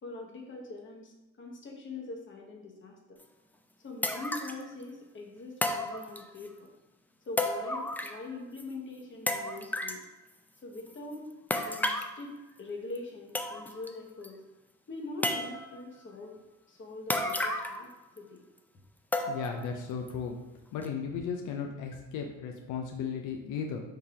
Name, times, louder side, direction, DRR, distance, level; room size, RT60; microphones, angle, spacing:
voice 1, 0.0-2.9 3.8-6.5 7.3-10.0 10.6-11.3 11.6-12.3 12.6-14.4 14.9-16.4 16.7-18.4, left 2 dB, 40° left, 1 dB, 1.1 m, -43 dB
sound 1, 3.2-3.3 4.0-4.6 5.6-6.5 7.4-8.3 8.6-8.7 9.3-10.0 11.5-12.2 13.0-13.1 13.3-13.9 14.2-14.3 15.2-15.8 17.1-17.9 18.2-18.3 19.1-19.6 20.1-20.2 20.8-20.9, left 1 dB, 5° left, 0.3 m, -32 dB
voice 2, 19.3-20.4 20.7-23.8, left 6 dB, 85° left, 3 dB, 0.5 m, -35 dB
3.8 x 2.7 x 4.7 m, 1.0 s
cardioid pair, 90°, 30 cm